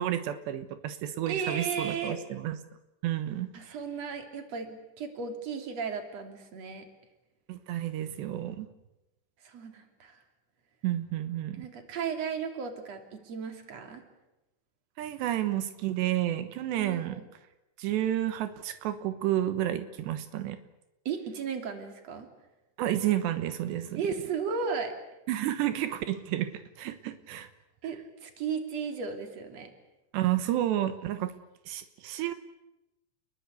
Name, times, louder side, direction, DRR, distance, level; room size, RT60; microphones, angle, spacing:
voice 1, 0.0-2.6 3.0-3.8 7.5-8.7 10.8-11.7 15.0-17.2 17.8-20.6 22.8-24.0 25.3-27.5 30.1-31.3 31.7-32.3, right 12 dB, 85° right, 10 dB, 3.4 m, -31 dB
voice 2, 1.3-2.2 3.5-6.8 9.4-10.2 11.5-14.0 16.8-17.2 21.1-22.3 23.9-25.0 27.8-29.7, right 6 dB, 40° right, 5 dB, 3.9 m, -35 dB
29.5 x 22.0 x 8.4 m, 0.94 s
omnidirectional pair, 4.8 m